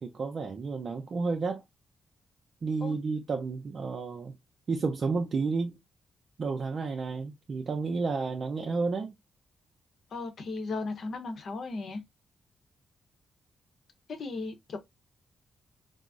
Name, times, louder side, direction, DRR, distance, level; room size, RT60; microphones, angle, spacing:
voice 1, 0.0-1.6 2.6-4.3 4.7-5.8 6.4-9.1, right 4 dB, 55° right, 0.5 m, -31 dB
voice 2, 10.1-12.0 14.1-14.8, left 3 dB, 65° left, 0.8 m, -36 dB
3.5 x 2.0 x 2.4 m
cardioid pair, 60°, 0 cm